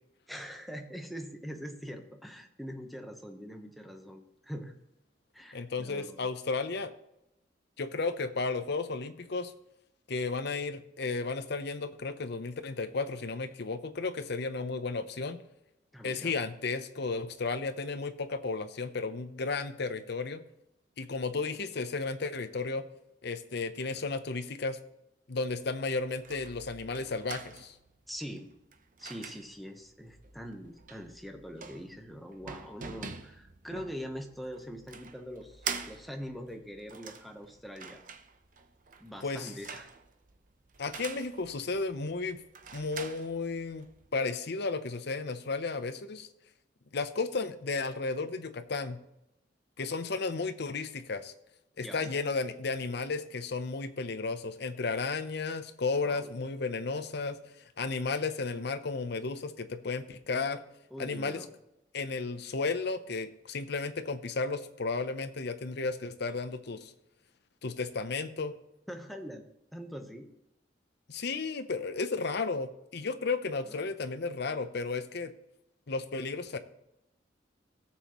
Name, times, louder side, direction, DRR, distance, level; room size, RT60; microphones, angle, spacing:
voice 1, 0.3-4.7 5.3-6.2 15.9-16.4 28.1-28.5 29.0-38.0 39.0-39.9 51.8-52.1 56.0-56.3 60.9-61.5 68.9-70.3 73.7-73.9, equal, ahead, 4 dB, 1.0 m, -43 dB
voice 2, 5.5-6.9 7.8-9.5 10.1-15.4 16.0-20.4 21.0-22.8 23.2-24.8 25.3-27.7 39.2-39.5 40.8-42.4 42.7-43.8 44.1-46.3 46.9-49.0 49.8-51.3 51.8-57.4 57.8-60.6 61.0-61.4 61.9-66.9 67.6-68.5 71.1-75.3 75.9-76.6, left 4 dB, 65° left, 10 dB, 0.8 m, -33 dB
sound 1, 25.5-44.1, right 6 dB, 50° right, 0.8 m, -46 dB
16.5 x 7.2 x 3.0 m, 0.88 s
head